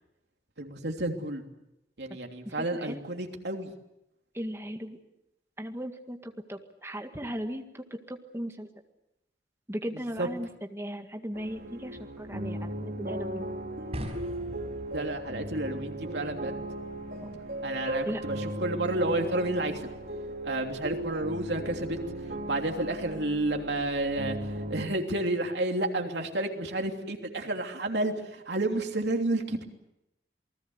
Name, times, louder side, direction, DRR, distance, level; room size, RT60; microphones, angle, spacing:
voice 1, 0.6-1.5 2.0-3.7 9.9-10.3 14.9-16.6 17.6-19.9 20.4-22.0 22.5-29.6, right 2 dB, 75° right, 3 dB, 3.1 m, -31 dB
voice 2, 4.4-5.0 5.6-7.6 8.1-8.7 9.7-13.5 17.2-17.4 17.8-18.2, equal, 15° right, 5 dB, 2.0 m, -37 dB
sound 1, 11.3-24.8, right 1 dB, 55° right, 4.7 m, -37 dB
sound 2, 13.9-20.1, equal, 35° right, 5.1 m, -45 dB
28.0 x 20.0 x 8.0 m, 0.88 s
head